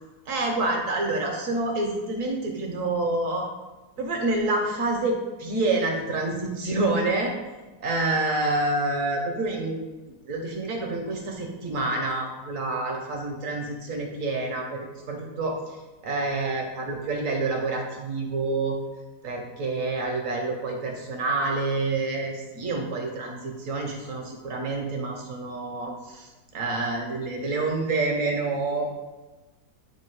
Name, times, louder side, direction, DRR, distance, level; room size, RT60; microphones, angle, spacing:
voice 1, 0.3-3.5 4.0-7.3 7.8-9.8 10.2-18.8 19.2-28.9, right 2 dB, 55° right, 1 dB, 0.9 m, -28 dB
8.0 x 2.7 x 4.6 m, 1.1 s
omnidirectional pair, 2.2 m